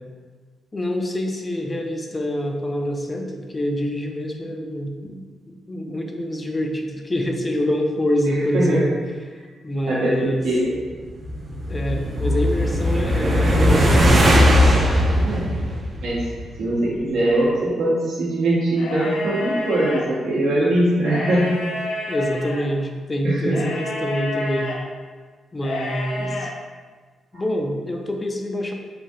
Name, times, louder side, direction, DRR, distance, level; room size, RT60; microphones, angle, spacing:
voice 1, 0.7-5.2 5.5-9.0 9.6-10.4 11.7-14.3 22.1-24.7 25.5-26.5 27.3-28.7, equal, 25° left, 3 dB, 0.3 m, -26 dB
voice 2, 8.3-8.9 9.9-10.7 15.2-15.5 16.0-16.3 16.6-21.5 22.1-22.2 23.2-23.7 26.2-26.3 27.3-27.4, right 1 dB, 80° right, -5 dB, 0.8 m, -22 dB
sound 1, 11.1-16.5, equal, 40° right, 0.4 m, -18 dB
sound 2, 18.7-20.0 21.0-22.6 23.5-24.8 25.6-26.5, left 2 dB, 85° left, 0.5 m, -29 dB
3.2 x 2.3 x 2.6 m, 1.5 s
cardioid pair, 95°, 0 cm